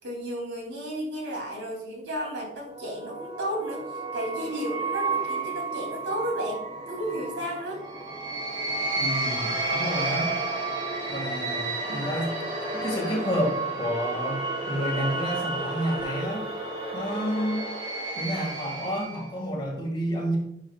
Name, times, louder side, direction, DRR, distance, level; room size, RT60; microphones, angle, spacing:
voice 1, 0.0-7.8, equal, 85° right, -1 dB, 3.0 m, -33 dB
sound 1, 2.5-19.3, right 3 dB, 25° right, 2.4 m, -31 dB
voice 2, 9.0-10.3 11.1-12.3 12.7-16.5 16.9-17.7 18.1-20.4, equal, 25° left, -1 dB, 1.9 m, -30 dB
10.5 x 5.7 x 2.4 m, 0.77 s
head